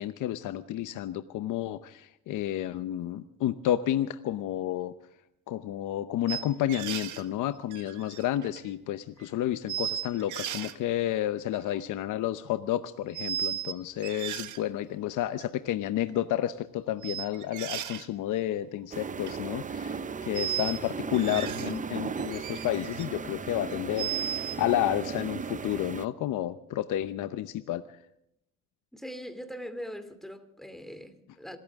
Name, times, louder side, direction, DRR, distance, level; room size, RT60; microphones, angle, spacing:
voice 1, 0.0-4.9 5.5-28.0, left 12 dB, 85° left, 0.8 m, -31 dB
sound 1, 6.3-7.3 7.7-8.7 9.2-9.3 9.7-10.7 11.5-11.8 13.1-13.7 14.0-14.6 15.4-15.5 17.0-18.1 19.0-19.3 20.3-20.8 21.1-21.8 22.2-23.1 23.5-24.6, right 11 dB, 80° right, 1.5 m, -35 dB
sound 2, 18.9-26.1, right 5 dB, 25° right, 0.6 m, -36 dB
voice 2, 28.9-31.6, equal, ahead, 2.8 m, -41 dB
26.5 x 14.5 x 3.6 m
cardioid pair, 90°, 30 cm